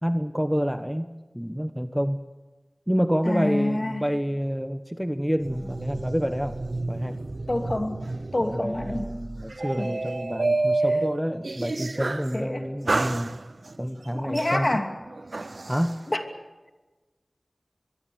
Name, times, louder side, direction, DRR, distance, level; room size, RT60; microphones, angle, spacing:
voice 1, 0.0-1.1 1.3-2.2 2.9-6.6 6.9-7.3 8.4-13.4 13.8-14.8 15.7-16.0, equal, 5° right, 9 dB, 1.1 m, -28 dB
voice 2, 3.2-4.0 7.5-8.0 8.3-9.1 9.8-9.9 12.3-12.7 14.1-14.9 16.1-16.2, left 1 dB, 40° left, 5 dB, 2.8 m, -27 dB
sound 1, 5.4-12.4 12.9-13.8 14.4-15.9, right 2 dB, 70° right, 0.6 m, -30 dB
25.0 x 22.0 x 7.0 m, 1.2 s
wide cardioid pair, 50°, 0 cm